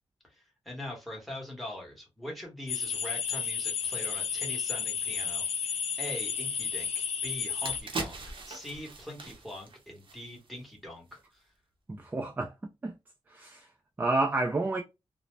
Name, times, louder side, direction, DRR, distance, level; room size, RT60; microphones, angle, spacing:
voice 1, 0.6-11.4, left 1 dB, ahead, 1.0 m, -42 dB
sound 1, 2.7-7.8, left 7 dB, 75° left, 0.5 m, -32 dB
sound 2, 6.9-7.0 7.4-10.7 11.0-11.2, right 3 dB, 55° right, 0.7 m, -40 dB
voice 2, 11.9-12.5 12.8-12.9 13.3-13.7 14.0-14.8, right 2 dB, 15° right, 0.3 m, -29 dB
2.6 x 2.0 x 3.1 m
wide cardioid pair, 160°, 11 cm